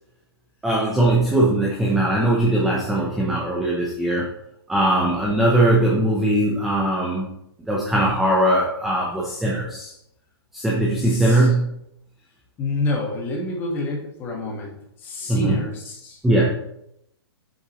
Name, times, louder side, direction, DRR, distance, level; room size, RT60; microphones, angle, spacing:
voice 1, 0.6-4.3 4.7-7.3 7.7-9.9 10.5-11.7 15.3-15.7 16.2-16.4, right 1 dB, ahead, -4 dB, 0.6 m, -20 dB
voice 2, 12.6-14.7 15.0-16.2, left 2 dB, 15° left, -1 dB, 1.3 m, -27 dB
8.4 x 7.1 x 3.0 m, 0.78 s
hypercardioid pair, 175°, 14 cm